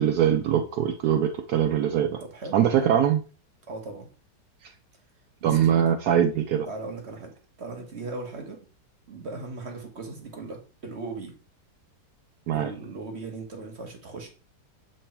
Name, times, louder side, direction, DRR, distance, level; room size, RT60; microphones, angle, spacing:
voice 1, 0.0-2.2 2.5-3.2 5.4-6.7 12.5-12.7, right 9 dB, 70° right, 6 dB, 1.1 m, -22 dB
voice 2, 2.3-3.0 3.7-4.1 5.4-5.8 6.6-8.6 9.1-11.3 12.5-14.3, right 3 dB, 40° right, 3 dB, 1.3 m, -38 dB
7.5 x 3.2 x 4.3 m, 0.36 s
omnidirectional pair, 1.9 m